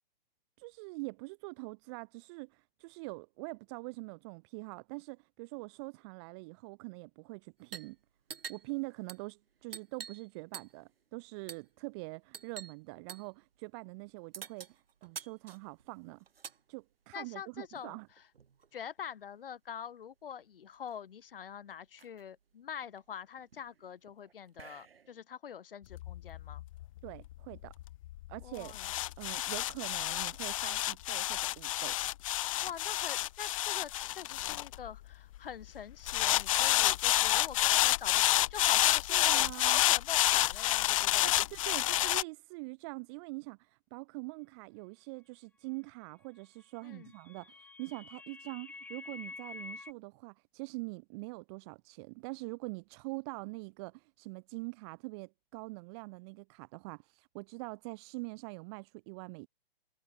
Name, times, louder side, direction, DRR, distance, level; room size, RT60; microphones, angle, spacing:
voice 1, 0.6-8.0 8.5-16.2 16.7-18.1 27.0-27.7 28.3-28.7 29.2-32.0 39.1-39.8 41.2-59.5, right 29 dB, 30° right, 1.0 m, -44 dB
sound 1, 7.6-7.9 8.2-10.3 10.5-10.9 11.5-11.7 12.3-12.8 13.1-13.3 14.3-16.6 17.7-18.7 20.0-20.1 20.3-20.9 21.4-21.5 21.7-22.2 22.8-25.2, right 6 dB, 75° right, 7.4 m, -48 dB
voice 2, 17.1-18.0 18.7-26.6 28.4-28.9 32.6-41.3 46.8-47.1, left 8 dB, 70° left, 2.6 m, -45 dB
sound 2, 25.9-35.4 36.1-42.2, left 15 dB, 35° left, 0.6 m, -29 dB
sound 3, 46.7-49.9, left 3 dB, 5° left, 1.8 m, -48 dB
hypercardioid pair, 140°, 29 cm